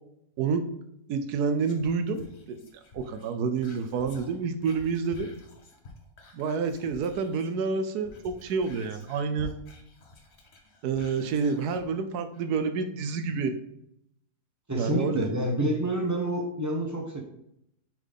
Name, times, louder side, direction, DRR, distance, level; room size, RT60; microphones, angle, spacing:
voice 1, 1.1-2.6 2.9-5.3 6.3-9.5 10.8-13.6 14.7-15.3, right 5 dB, 75° right, 9 dB, 1.1 m, -28 dB
Whispering, 1.6-7.6 7.9-11.9 12.3-12.4, left 3 dB, 45° left, 1.1 m, -50 dB
voice 2, 14.7-17.2, right 1 dB, 15° right, 2 dB, 0.7 m, -28 dB
7.3 x 3.9 x 3.5 m, 0.77 s
omnidirectional pair, 1.7 m